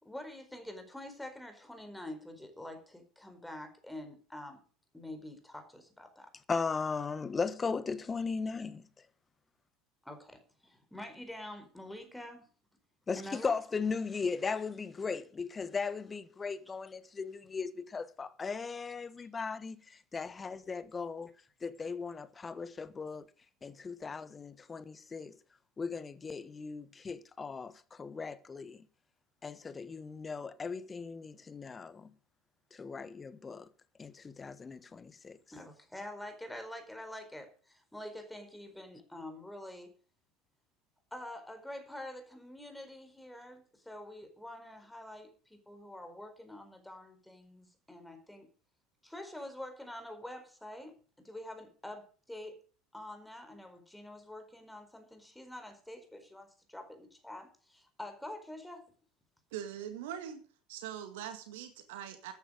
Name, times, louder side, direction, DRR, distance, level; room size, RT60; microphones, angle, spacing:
voice 1, 0.0-4.6 4.9-6.3 10.0-12.5 13.2-13.6 35.5-39.9 41.1-48.5 49.0-52.6 52.9-58.8, left 1 dB, 5° left, 4.6 m, -46 dB
voice 2, 6.5-8.9 13.1-21.3 21.6-23.3 23.6-25.3 25.8-28.8 29.4-32.1 32.7-33.7 34.0-35.4, left 5 dB, 25° left, 1.3 m, -37 dB
voice 3, 59.5-60.4 60.7-62.3, right 10 dB, 65° right, 1.9 m, -42 dB
14.0 x 9.9 x 5.2 m
figure-of-eight pair, 70°, 0 cm